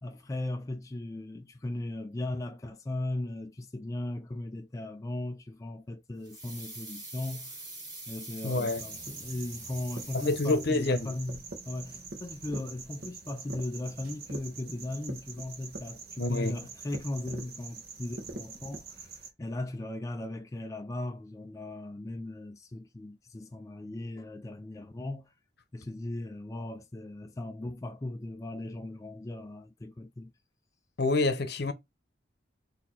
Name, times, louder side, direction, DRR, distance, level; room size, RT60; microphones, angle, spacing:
voice 1, 0.0-7.6 8.1-11.4 11.7-25.3 25.7-30.3, left 1 dB, 20° left, 0.3 m, -37 dB
sound 1, 6.2-11.0 11.3-11.4, right 2 dB, 20° right, 2.0 m, -45 dB
voice 2, 8.4-8.8 10.1-11.1 16.2-16.6 31.0-31.7, left 2 dB, 60° left, 0.8 m, -27 dB
sound 2, 8.6-19.3, right 3 dB, 55° right, 1.2 m, -44 dB
4.2 x 2.8 x 4.2 m
head